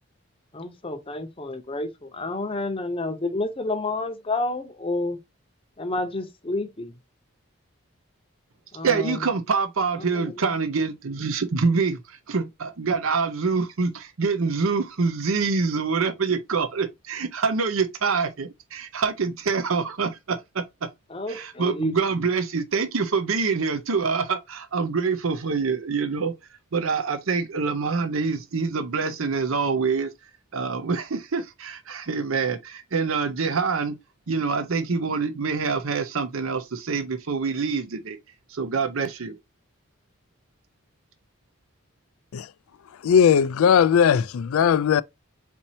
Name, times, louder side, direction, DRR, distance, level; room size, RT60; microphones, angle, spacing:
voice 1, 0.5-5.2 5.8-7.0 8.7-9.3 10.0-10.7 21.1-22.3, left 2 dB, 25° left, 0.7 m, -30 dB
voice 2, 8.8-20.6 21.3-26.3 26.7-30.1 30.5-34.0 34.3-38.2 38.5-39.4, right 4 dB, 80° right, 0.7 m, -25 dB
voice 3, 43.0-45.0, left 7 dB, 85° left, 0.4 m, -18 dB
4.4 x 4.3 x 2.7 m
head